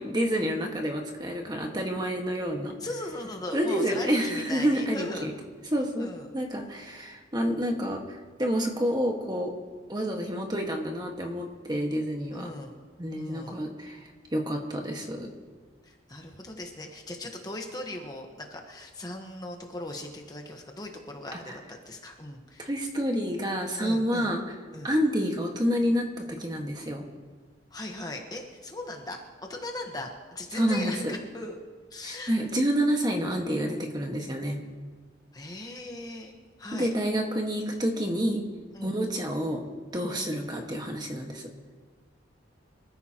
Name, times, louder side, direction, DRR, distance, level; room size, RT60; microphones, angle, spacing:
voice 1, 0.0-2.7 3.5-5.3 5.7-6.1 6.3-9.5 9.9-12.5 13.0-14.0 14.3-15.3 22.6-24.4 24.8-27.0 30.5-31.2 32.0-34.6 36.7-38.4 38.8-39.6 39.9-41.4, equal, 20° right, 1 dB, 1.6 m, -28 dB
voice 2, 2.8-5.3 6.0-6.3 12.3-12.7 13.2-13.6 15.8-22.7 23.8-24.3 24.7-24.9 27.7-31.6 31.9-32.3 35.3-36.3 36.6-36.9 38.7-39.0 40.0-40.1, left 1 dB, 20° left, 2 dB, 1.2 m, -39 dB
25.5 x 14.0 x 3.0 m, 1.4 s
head